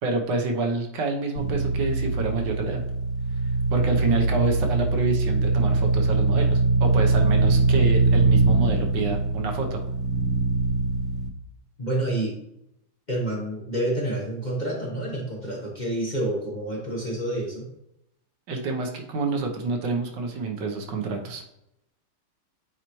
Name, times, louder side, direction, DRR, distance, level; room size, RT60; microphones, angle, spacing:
voice 1, 0.0-2.8 3.7-9.8 18.5-21.4, right 3 dB, 60° right, 3 dB, 1.5 m, -28 dB
sound 1, 1.4-11.3, right 3 dB, 80° right, 1.7 m, -22 dB
voice 2, 11.8-12.3 13.1-17.7, right 1 dB, 30° left, -3 dB, 0.9 m, -28 dB
8.8 x 4.1 x 3.1 m, 0.81 s
omnidirectional pair, 2.4 m